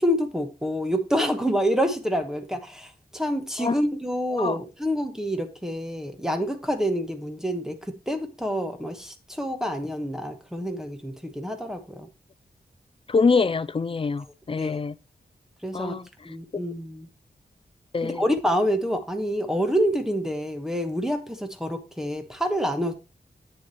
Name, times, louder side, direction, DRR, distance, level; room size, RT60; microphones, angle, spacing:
voice 1, 0.0-12.1 14.6-14.8 15.6-15.9 16.2-17.1 18.0-22.9, equal, 5° right, 1.3 m, -27 dB
voice 2, 13.1-14.9 15.7-16.1 17.9-18.3, left 4 dB, 30° left, 0.4 m, -24 dB
8.7 x 7.1 x 3.0 m
wide cardioid pair, 115°, 17 cm